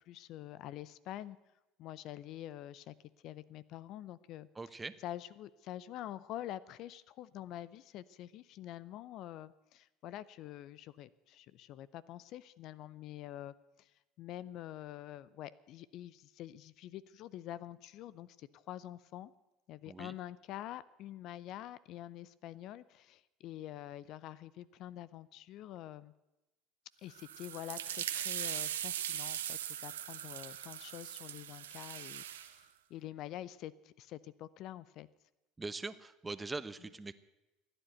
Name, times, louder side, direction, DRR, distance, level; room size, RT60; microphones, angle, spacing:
voice 1, 0.1-1.4 1.8-2.9 3.2-19.3 19.7-26.1 27.0-35.1, left 13 dB, 60° left, 19 dB, 0.6 m, -47 dB
voice 2, 4.6-4.9 19.9-20.1 35.6-37.1, right 3 dB, 15° right, 14 dB, 1.0 m, -42 dB
sound 1, 27.1-32.5, right 11 dB, 85° right, 1.0 m, -40 dB
15.5 x 10.0 x 9.1 m, 0.99 s
hypercardioid pair, 75°, 0 cm